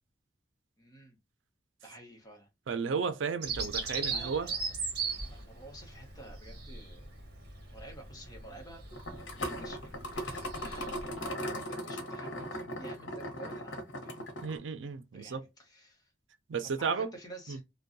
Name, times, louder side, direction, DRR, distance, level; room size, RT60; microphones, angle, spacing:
voice 1, 0.8-1.2 1.8-2.5 3.8-4.7 5.3-7.1 7.7-8.8 9.2-10.9 11.2-14.3 15.1-16.1 16.6-17.6, right 2 dB, 20° left, 0.9 m, -51 dB
voice 2, 2.7-4.5 14.4-15.5 16.5-17.1 17.5-17.6, right 5 dB, 85° right, 0.5 m, -33 dB
Bird vocalization bird call bird song, 3.4-11.3, right 4 dB, 55° right, 0.9 m, -38 dB
sound 1, 8.9-14.6, equal, 80° left, 0.8 m, -38 dB
2.6 x 2.2 x 2.5 m
head